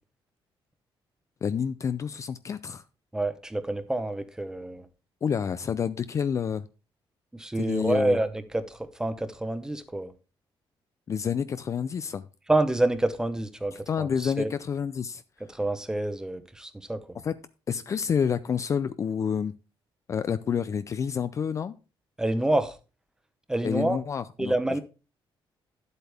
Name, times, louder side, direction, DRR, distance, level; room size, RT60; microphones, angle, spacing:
voice 1, 1.4-2.8 5.2-6.7 7.6-8.2 11.1-12.3 13.7-15.2 17.2-17.3 17.7-19.5 20.1-21.8 23.6-24.8, left 7 dB, 35° left, 13 dB, 0.4 m, -29 dB
voice 2, 3.1-4.9 7.3-10.1 12.5-14.5 15.5-17.2 22.2-22.8 23.5-24.0 24.4-24.8, right 2 dB, 5° right, 11 dB, 0.8 m, -28 dB
11.5 x 8.0 x 3.4 m, 0.32 s
cardioid pair, 170°, 9 cm